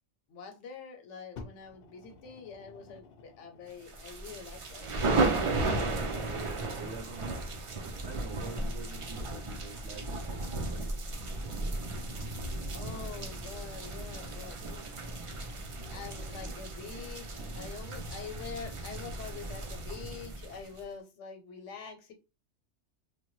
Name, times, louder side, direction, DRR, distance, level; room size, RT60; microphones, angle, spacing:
voice 1, 0.3-4.9 12.7-14.8 15.9-22.1, left 6 dB, 85° left, 1.0 m, -45 dB
Fire, 1.4-4.2 5.0-5.1, left 4 dB, 60° left, 0.7 m, -51 dB
sound 1, 3.9-20.8, right 2 dB, 55° right, 0.3 m, -35 dB
voice 2, 6.1-11.0, right 4 dB, 75° right, 0.8 m, -47 dB
3.1 x 2.2 x 3.0 m
omnidirectional pair, 1.2 m